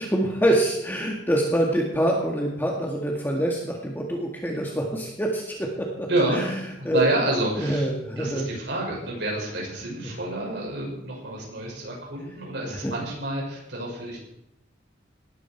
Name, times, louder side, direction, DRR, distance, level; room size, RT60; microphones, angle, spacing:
voice 1, 0.0-6.6 6.8-7.0 7.6-8.6 12.7-12.9, right 1 dB, 10° left, 0 dB, 2.0 m, -25 dB
voice 2, 6.1-6.4 6.9-7.9 8.2-14.2, right 1 dB, 65° right, -2 dB, 6.4 m, -28 dB
19.0 x 13.0 x 4.6 m, 0.81 s
head